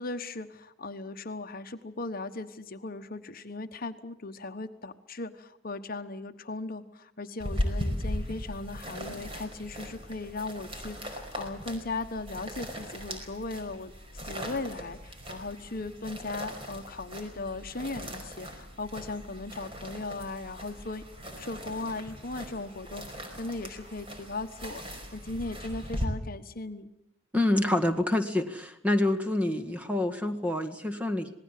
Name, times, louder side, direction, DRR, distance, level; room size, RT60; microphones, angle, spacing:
voice 1, 0.0-21.1 21.4-26.9, left 3 dB, 50° left, 8 dB, 1.2 m, -38 dB
sound 1, 7.4-26.1, equal, 30° right, 5.0 m, -39 dB
voice 2, 27.3-31.3, left 1 dB, 5° right, 6 dB, 1.8 m, -27 dB
26.5 x 19.5 x 7.5 m, 0.74 s
head